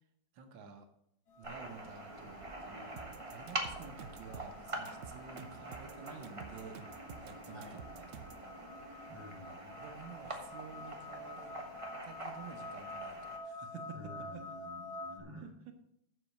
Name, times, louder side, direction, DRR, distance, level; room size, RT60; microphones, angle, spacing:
voice 1, 0.3-0.9 1.4-6.8 7.2-8.2 9.6-11.5 12.0-14.0 14.3-14.4 15.4-15.7, right 5 dB, 85° right, 6 dB, 1.8 m, -51 dB
sound 1, 1.3-15.2, left 2 dB, 60° left, 2.0 m, -49 dB
sound 2, 1.4-13.4, right 1 dB, 20° right, 1.2 m, -45 dB
sound 3, 3.0-8.5, right 7 dB, 55° right, 0.8 m, -50 dB
voice 2, 9.1-9.6 13.9-15.5, equal, 15° left, -3 dB, 3.8 m, -50 dB
7.8 x 6.8 x 6.4 m, 0.76 s
omnidirectional pair, 2.0 m